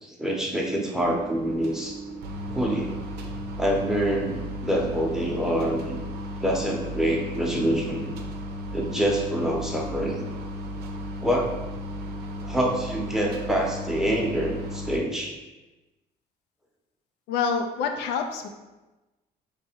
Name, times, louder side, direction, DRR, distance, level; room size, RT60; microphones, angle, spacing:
voice 1, 0.0-2.0 2.5-3.0 3.6-5.9 6.4-8.1 8.7-10.2 11.2-11.6 12.4-15.3, right 1 dB, 5° right, -1 dB, 0.8 m, -26 dB
sound 1, 1.0-15.0, equal, 75° right, 0.7 m, -35 dB
voice 2, 17.3-18.5, left 5 dB, 85° left, 5 dB, 0.5 m, -27 dB
3.4 x 3.3 x 4.4 m, 1.1 s
cardioid pair, 110°, 17 cm